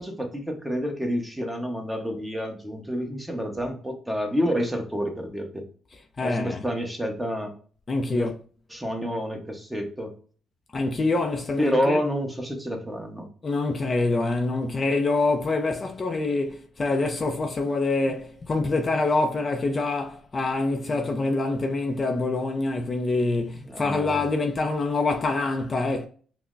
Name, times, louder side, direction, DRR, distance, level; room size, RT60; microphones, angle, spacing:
voice 1, 0.0-5.6 6.2-7.5 8.1-8.3 8.7-10.1 11.6-13.3 23.6-24.3, equal, 5° right, 1.0 m, -29 dB
voice 2, 6.2-6.6 7.9-8.3 10.7-12.0 13.4-26.1, left 3 dB, 35° left, 0.5 m, -25 dB
5.5 x 2.1 x 2.5 m
cardioid pair, 90°, 0 cm